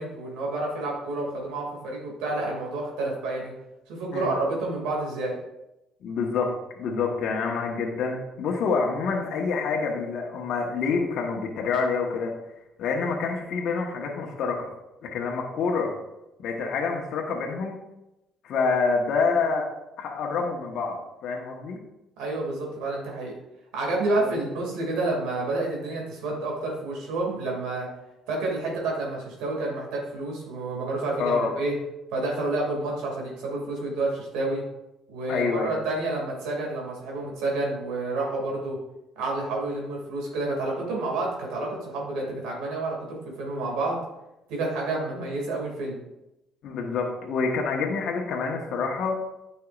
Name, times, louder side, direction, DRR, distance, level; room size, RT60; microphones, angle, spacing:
voice 1, 0.0-3.5 3.9-5.4 22.2-23.3 23.7-27.9 28.3-31.7 32.1-34.6 35.1-38.8 39.2-44.0 44.5-46.0, right 2 dB, 85° right, -1 dB, 2.4 m, -29 dB
voice 2, 6.0-6.5 6.8-12.3 12.8-14.7 15.0-15.9 16.4-17.8 18.4-19.7 20.0-21.8 24.1-24.2 31.2-31.5 35.3-35.7 46.6-49.2, left 4 dB, 65° left, 0 dB, 1.3 m, -27 dB
9.5 x 5.7 x 2.5 m, 0.92 s
supercardioid pair, 85°, 0 cm